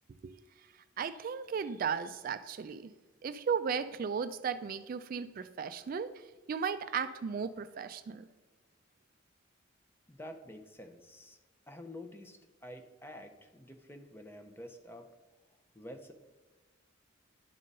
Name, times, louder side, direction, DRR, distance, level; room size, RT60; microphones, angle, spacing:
voice 1, 0.2-0.7 1.0-2.9 3.2-8.3, right 6 dB, 45° right, 11 dB, 0.3 m, -36 dB
voice 2, 10.1-11.4 11.7-15.1 15.7-16.1, left 1 dB, 10° left, 6 dB, 0.6 m, -49 dB
11.0 x 3.8 x 5.3 m, 1.3 s
head